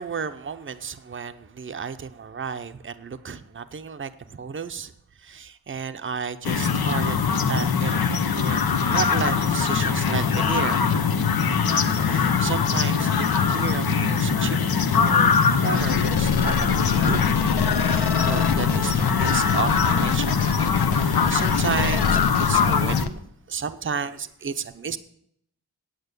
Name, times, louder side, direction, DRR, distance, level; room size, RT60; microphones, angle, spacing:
voice 1, 0.0-4.9 5.2-10.9 12.0-14.6 14.9-23.2 23.5-25.0, right 6 dB, 30° right, 0.7 m, -33 dB
sound 1, 6.4-23.1, left 6 dB, 70° left, 0.9 m, -22 dB
sound 2, 9.7-20.3, left 5 dB, 35° left, 0.7 m, -31 dB
sound 3, 15.7-23.1, left 6 dB, 90° left, 0.9 m, -28 dB
9.0 x 8.7 x 8.2 m
wide cardioid pair, 90°, 38 cm